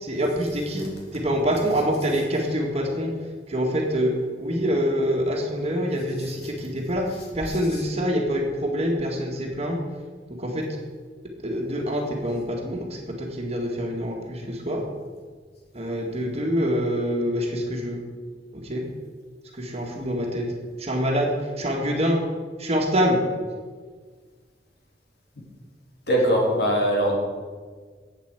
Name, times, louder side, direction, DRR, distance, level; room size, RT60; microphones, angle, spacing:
voice 1, 0.0-3.1 3.5-4.1 4.4-7.0 7.3-9.8 10.4-10.7 11.4-14.8 15.7-18.0 18.5-18.8 19.6-20.5 20.8-22.2 22.6-23.2, equal, 35° right, 1 dB, 2.0 m, -25 dB
voice 2, 0.6-0.9 1.6-1.8 2.1-2.2 2.4-2.5 6.2-6.5 7.1-7.9 26.1-27.2, equal, 65° left, -2 dB, 3.3 m, -25 dB
8.4 x 8.2 x 8.1 m, 1.5 s
head